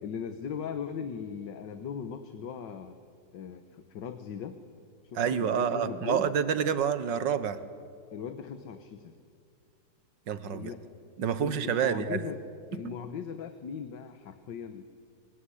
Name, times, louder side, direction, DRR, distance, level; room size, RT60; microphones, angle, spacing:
voice 1, 0.0-3.0 3.3-4.6 5.0-6.3 8.1-9.1 10.5-10.9 11.4-12.4 12.7-14.9, left 7 dB, 90° left, 8 dB, 1.8 m, -38 dB
voice 2, 5.2-7.6 10.3-10.7 11.2-12.2 12.8-12.9, right 8 dB, 90° right, 13 dB, 1.8 m, -28 dB
25.5 x 23.5 x 9.9 m, 2.3 s
omnidirectional pair, 1.9 m